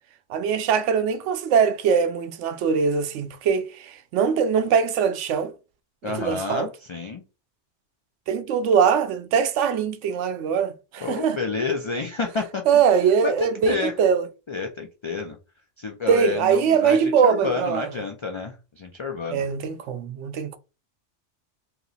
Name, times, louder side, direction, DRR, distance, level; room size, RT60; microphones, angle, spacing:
voice 1, 0.3-5.5 6.0-6.7 8.3-11.4 12.7-14.3 16.1-17.9 19.3-20.6, right 6 dB, 90° right, 0.9 m, -22 dB
voice 2, 6.0-7.2 11.0-12.6 13.2-13.9 14.5-15.4 15.8-19.5, left 4 dB, 45° left, 0.3 m, -29 dB
3.0 x 2.9 x 3.9 m
omnidirectional pair, 1.2 m